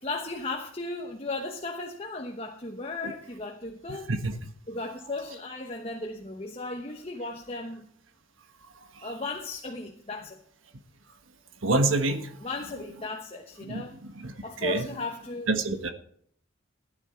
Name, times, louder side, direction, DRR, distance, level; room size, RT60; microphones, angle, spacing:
voice 1, 0.0-4.1 4.7-7.9 9.0-10.4 12.4-13.9 14.4-15.6, left 3 dB, 30° left, 3 dB, 1.0 m, -36 dB
voice 2, 11.6-12.3 13.7-14.3 14.6-14.8 15.5-15.9, right 2 dB, 85° right, 7 dB, 1.4 m, -26 dB
15.5 x 10.0 x 4.4 m, 0.62 s
head